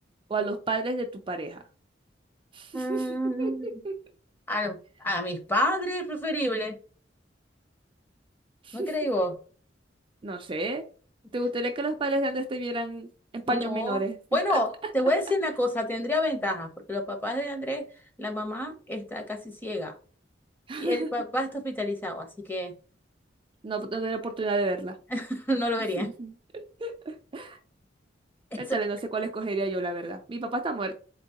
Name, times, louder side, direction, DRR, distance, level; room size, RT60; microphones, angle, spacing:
voice 1, 0.3-1.6 2.5-3.1 3.4-3.9 8.6-8.9 10.2-10.8 11.3-13.1 13.3-14.2 14.5-14.6 20.7-21.1 23.6-25.0 26.0-27.6 28.6-30.9, right 2 dB, 30° right, 0.4 m, -31 dB
voice 2, 2.7-3.8 4.5-6.8 8.7-9.4 13.5-14.0 14.3-17.9 18.2-20.0 20.7-22.7 25.1-26.1, left 1 dB, 10° left, 0.8 m, -29 dB
4.5 x 2.9 x 2.9 m
head